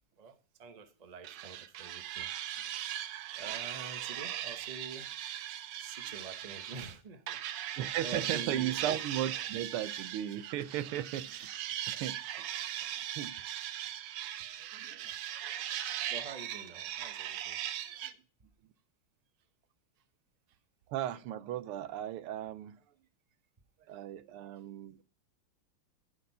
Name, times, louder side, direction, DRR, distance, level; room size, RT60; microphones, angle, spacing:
voice 1, 0.2-3.0 3.3-5.1 5.8-8.7 14.9-15.2 16.0-17.6 20.5-20.6, right 4 dB, 35° right, 0.6 m, -47 dB
sound 1, 1.2-6.9 7.3-18.1, right 11 dB, 70° right, 1.2 m, -39 dB
voice 2, 7.8-12.3 13.1-13.3 14.6-15.1 15.5-15.6 18.0-18.1 20.9-22.8 23.9-25.0, right 11 dB, 90° right, 1.6 m, -36 dB
13.0 x 4.5 x 5.5 m
omnidirectional pair, 2.3 m